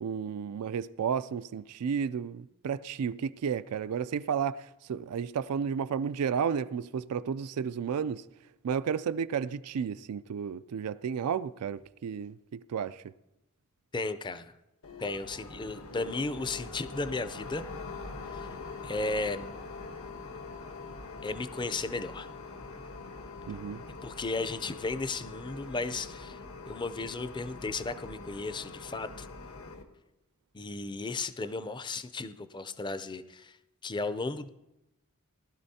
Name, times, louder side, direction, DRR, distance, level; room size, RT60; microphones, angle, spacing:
voice 1, 0.0-8.2 8.6-13.0 23.5-23.8, right 7 dB, 85° right, 0.4 m, -32 dB
voice 2, 13.9-14.5 15.0-17.6 18.3-18.5 18.8-19.5 21.2-22.3 24.0-26.4 26.7-29.3 30.5-33.6 33.8-34.5, left 3 dB, 20° left, 0.5 m, -35 dB
sound 1, 14.8-29.8, left 3 dB, 70° left, 1.2 m, -43 dB
19.0 x 12.0 x 2.8 m
head